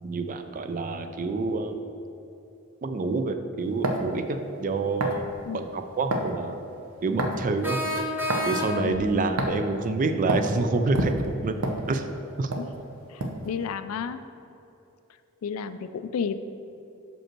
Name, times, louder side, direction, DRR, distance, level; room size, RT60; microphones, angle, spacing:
voice 1, 0.0-1.8 2.8-5.3 5.5-6.6 7.0-7.8 8.4-11.5 11.9-12.1 12.4-12.5, right 3 dB, 40° right, 7 dB, 0.4 m, -27 dB
sound 1, 3.8-4.1 5.0-5.2 6.1-6.3 7.2-7.5 8.3-8.5 9.4-9.7 10.3-10.5 10.9-12.2 12.5-12.7 13.2-13.5, right 1 dB, 70° right, 0.8 m, -27 dB
sound 2, 5.3-5.4 7.6-9.1, left 1 dB, 10° right, 0.7 m, -29 dB
voice 2, 13.1-14.2 15.4-16.4, left 6 dB, 70° left, 12 dB, 0.3 m, -32 dB
6.2 x 5.3 x 4.4 m, 2.9 s
head